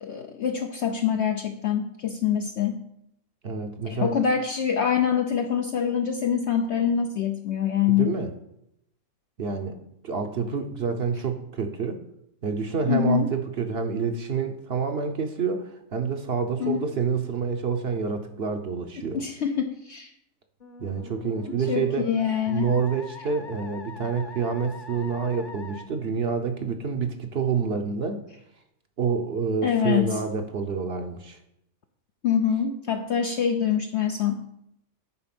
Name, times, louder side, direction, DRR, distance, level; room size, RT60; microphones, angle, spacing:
voice 1, 0.0-2.8 3.9-8.1 12.9-13.3 16.6-16.9 19.0-20.1 21.7-22.7 29.6-30.2 32.2-34.4, left 8 dB, 60° left, 4 dB, 0.8 m, -25 dB
voice 2, 3.4-4.1 7.9-8.3 9.4-9.8 10.0-12.0 12.4-19.2 20.8-22.1 22.5-28.2 29.0-31.4, right 5 dB, 55° right, 5 dB, 0.9 m, -28 dB
Musical instrument, 20.6-25.8, left 4 dB, 40° left, 1.1 m, -43 dB
9.7 x 4.5 x 5.9 m, 0.79 s
omnidirectional pair, 1.5 m